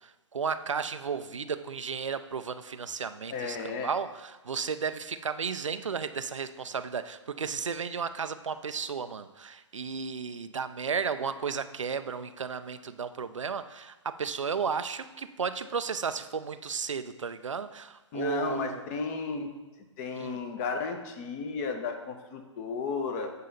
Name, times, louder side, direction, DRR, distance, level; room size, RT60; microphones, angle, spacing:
voice 1, 0.0-18.8 20.2-20.4, right 6 dB, 80° right, 11 dB, 0.5 m, -34 dB
voice 2, 3.3-3.9 18.1-19.5 20.0-23.3, left 4 dB, 30° left, 5 dB, 0.9 m, -33 dB
8.2 x 5.5 x 3.9 m, 1.1 s
figure-of-eight pair, 125°, 16 cm